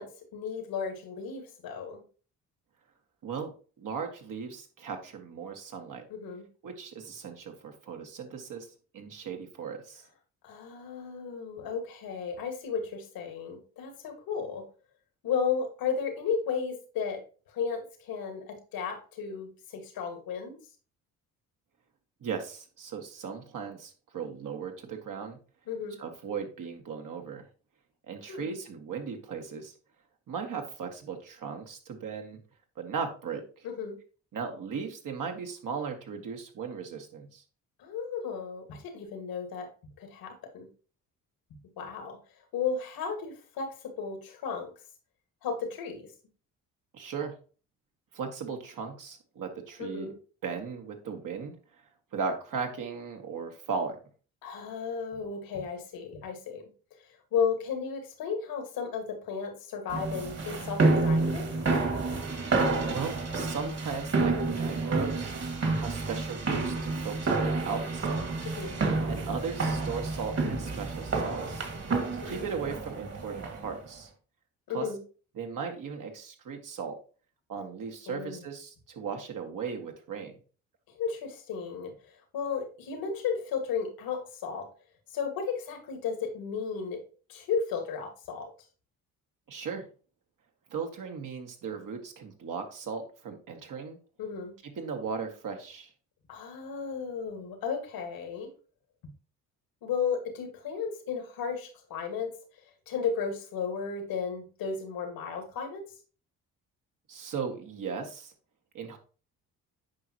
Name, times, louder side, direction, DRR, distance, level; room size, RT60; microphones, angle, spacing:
voice 1, 0.0-2.0 6.1-6.5 10.4-14.6 15.2-17.2 17.5-20.6 25.7-26.0 28.3-28.6 33.6-34.0 37.8-39.7 40.0-40.7 41.8-42.2 42.5-44.7 45.4-46.1 49.8-50.1 54.4-56.6 57.3-61.4 68.6-68.8 72.2-72.4 74.7-75.0 78.1-78.4 81.0-84.7 85.1-87.0 87.3-88.5 94.2-94.5 96.3-98.5 99.8-102.3 102.9-105.8, left 6 dB, 80° left, 5 dB, 2.0 m, -34 dB
voice 2, 3.2-6.0 6.6-8.7 8.9-10.0 22.2-25.4 26.0-27.4 28.1-29.7 30.3-32.4 32.8-33.7 34.3-37.4 46.9-47.3 48.1-50.1 50.4-51.6 52.1-54.0 62.8-65.3 65.8-68.5 69.1-71.6 72.1-74.1 74.7-74.9 75.4-77.0 77.5-80.3 89.5-89.8 90.7-94.0 94.7-95.9 107.1-108.3 108.7-109.0, right 6 dB, 60° right, 3 dB, 1.8 m, -37 dB
sound 1, 59.9-73.8, right 3 dB, 45° right, 2.3 m, -29 dB
8.6 x 5.2 x 3.0 m, 0.37 s
supercardioid pair, 70°, 35 cm